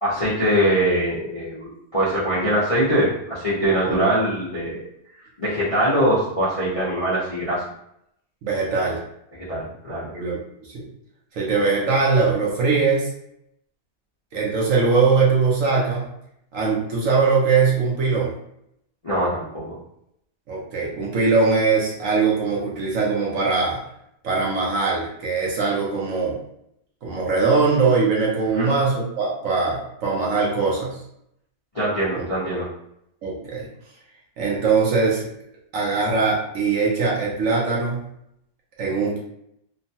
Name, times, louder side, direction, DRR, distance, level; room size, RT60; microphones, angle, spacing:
voice 1, 0.0-4.8 5.4-7.6 9.3-10.1 19.0-19.8 28.5-28.7 31.7-32.7, right 1 dB, 35° left, -10 dB, 0.6 m, -22 dB
voice 2, 8.4-9.0 10.1-10.8 11.3-13.1 14.3-16.1 16.5-18.3 20.5-23.8 24.2-26.4 27.0-31.0 32.1-32.2 33.2-33.7 34.4-35.3 35.7-38.1 38.8-39.2, right 4 dB, 65° right, -4 dB, 1.0 m, -21 dB
3.0 x 2.2 x 2.7 m, 0.76 s
omnidirectional pair, 1.7 m